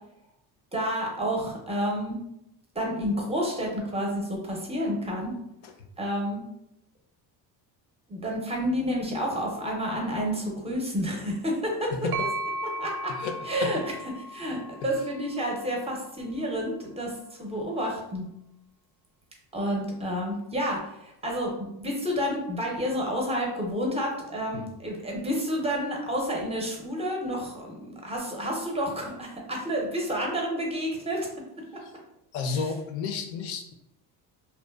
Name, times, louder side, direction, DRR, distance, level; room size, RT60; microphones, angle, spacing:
voice 1, 0.7-2.2 2.7-5.3 6.0-6.4 8.1-11.9 12.8-13.1 13.5-13.8 14.3-18.3 19.5-31.3 31.7-31.8, equal, 15° right, -1 dB, 0.5 m, -30 dB
voice 2, 11.9-12.3 13.1-13.7 14.8-14.9 24.5-24.7 31.8-31.9 32.3-33.7, left 5 dB, 70° left, 5 dB, 0.6 m, -32 dB
sound 1, 12.1-15.9, right 1 dB, 70° right, 0.5 m, -36 dB
2.7 x 2.2 x 2.2 m, 0.82 s
cardioid pair, 100°, 49 cm